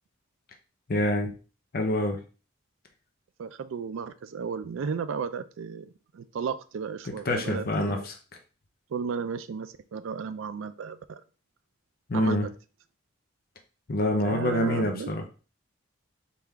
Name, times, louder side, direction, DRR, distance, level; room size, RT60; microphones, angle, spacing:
voice 1, 0.9-1.3 1.7-2.2 7.1-8.1 12.1-12.5 13.9-15.2, left 1 dB, 50° left, 4 dB, 0.6 m, -26 dB
voice 2, 3.4-8.0 8.9-11.2 12.1-12.5 14.2-15.1, right 6 dB, 70° right, 11 dB, 0.4 m, -34 dB
4.1 x 3.6 x 3.4 m, 0.35 s
head